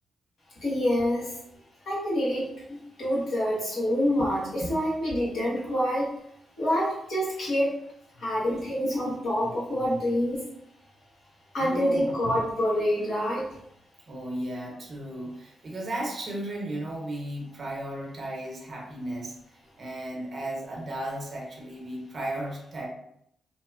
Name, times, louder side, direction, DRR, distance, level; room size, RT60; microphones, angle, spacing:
voice 1, 0.6-1.3 1.8-6.1 6.6-7.7 8.2-10.4 11.5-13.5, equal, 70° left, -7 dB, 1.3 m, -27 dB
voice 2, 11.6-12.4 14.1-22.9, right 1 dB, 55° right, -2 dB, 0.8 m, -35 dB
2.9 x 2.0 x 2.4 m, 0.73 s
supercardioid pair, 50°, 0 cm